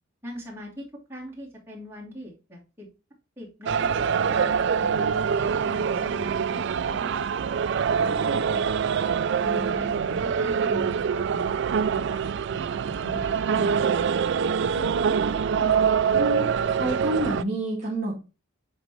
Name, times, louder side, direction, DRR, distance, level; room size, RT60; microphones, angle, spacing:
voice 1, 0.2-2.9 3.4-7.5 7.8-8.8 9.4-14.1, equal, 10° right, -5 dB, 2.4 m, -41 dB
sound 1, 3.7-17.4, right 6 dB, 55° right, 0.3 m, -25 dB
voice 2, 14.7-15.7 16.1-18.2, right 1 dB, 35° right, -4 dB, 1.6 m, -30 dB
8.0 x 3.7 x 3.4 m, 0.30 s
head